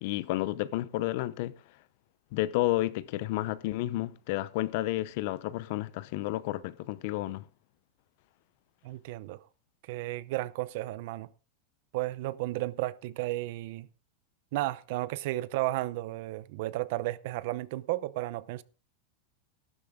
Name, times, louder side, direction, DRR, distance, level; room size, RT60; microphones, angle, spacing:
voice 1, 0.0-1.5 2.3-7.5, left 16 dB, 55° left, 0.7 m, -31 dB
voice 2, 8.8-9.4 9.8-11.3 11.9-13.9 14.5-18.6, right 17 dB, 55° right, 0.8 m, -33 dB
13.5 x 12.5 x 3.8 m
supercardioid pair, 160°, 0 cm